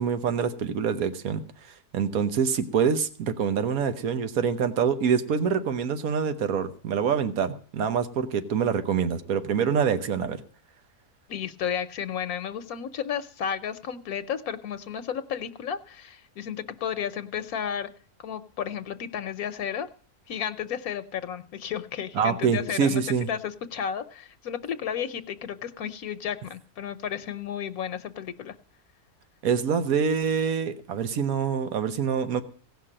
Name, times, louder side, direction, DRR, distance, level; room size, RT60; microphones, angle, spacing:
voice 1, 0.0-10.4 22.1-23.3 29.4-32.4, right 7 dB, 70° right, 10 dB, 1.5 m, -26 dB
voice 2, 11.3-17.9 18.2-19.9 20.3-23.0 23.3-28.5, left 8 dB, 75° left, 10 dB, 1.3 m, -33 dB
17.0 x 6.0 x 8.7 m, 0.42 s
omnidirectional pair, 1.6 m